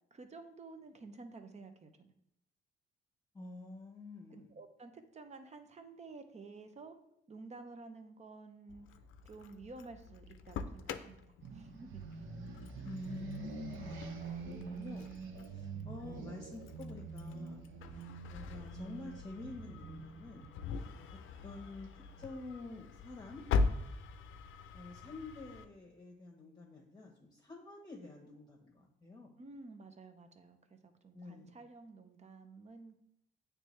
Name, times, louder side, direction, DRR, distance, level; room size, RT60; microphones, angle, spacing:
voice 1, 0.1-2.1 4.3-7.0 7.3-8.9 9.2-11.2 11.5-12.2 29.4-32.9, right 3 dB, 35° right, 7 dB, 0.8 m, -52 dB
voice 2, 3.3-4.5 12.8-15.1 15.4-17.6 18.3-20.9 21.4-23.4 24.7-29.4 31.1-31.5, left 3 dB, 20° left, -1 dB, 1.1 m, -48 dB
Engine starting, 8.7-25.7, left 4 dB, 85° left, 0.5 m, -42 dB
sound 1, 11.4-22.1, right 5 dB, 75° right, 0.9 m, -46 dB
8.7 x 3.4 x 3.2 m, 0.80 s
cardioid pair, 90°, 20 cm